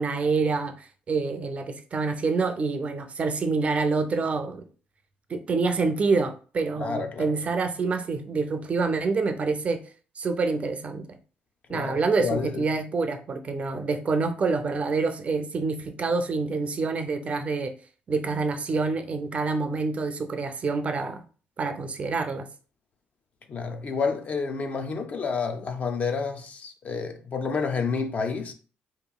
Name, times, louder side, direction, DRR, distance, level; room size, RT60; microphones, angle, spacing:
voice 1, 0.0-4.6 5.3-9.8 10.2-11.2 11.7-17.7 18.1-21.2 21.6-22.5, right 4 dB, 40° right, 0.4 m, -27 dB
voice 2, 6.8-7.3 11.7-12.6 23.5-28.5, left 5 dB, 45° left, 0.4 m, -29 dB
2.8 x 2.5 x 2.2 m
cardioid pair, 80°, 3 cm